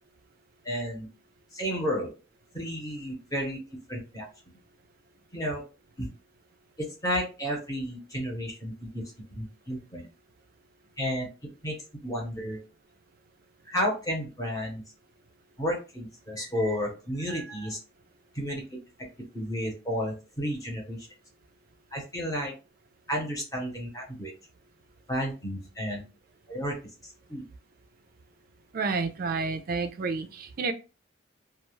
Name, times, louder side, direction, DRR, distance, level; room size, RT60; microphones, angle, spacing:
voice 1, 0.6-1.1 1.5-2.1 2.5-3.6 3.9-4.2 5.3-5.6 6.0-6.1 7.0-9.0 9.3-10.1 11.0-11.3 11.6-11.7 12.0-12.6 13.7-14.8 15.6-17.8 18.3-18.6 19.3-21.1 21.9-22.5 23.1-24.3 25.1-26.0 26.5-26.7 27.3-27.4, equal, 15° left, 0 dB, 0.8 m, -32 dB
voice 2, 28.7-30.7, right 4 dB, 45° right, 9 dB, 0.3 m, -30 dB
2.3 x 2.2 x 3.1 m, 0.32 s
head